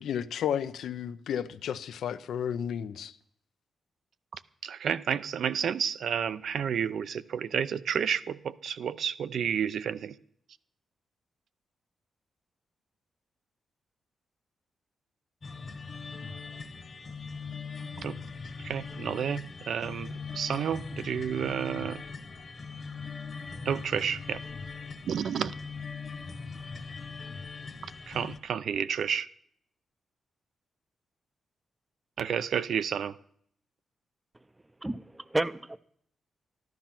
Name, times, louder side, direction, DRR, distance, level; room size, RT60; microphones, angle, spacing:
voice 1, 0.0-3.1, left 9 dB, 85° left, 0.6 m, -32 dB
voice 2, 4.3-10.2 18.0-18.2 18.6-22.0 23.6-24.4 25.0-25.5 28.1-29.3 32.2-33.2, right 8 dB, 65° right, 0.5 m, -31 dB
sound 1, 15.4-28.4, left 5 dB, 35° left, 1.2 m, -41 dB
voice 3, 34.8-35.8, right 1 dB, 10° right, 0.5 m, -31 dB
13.5 x 12.0 x 5.9 m
wide cardioid pair, 135°, 0 cm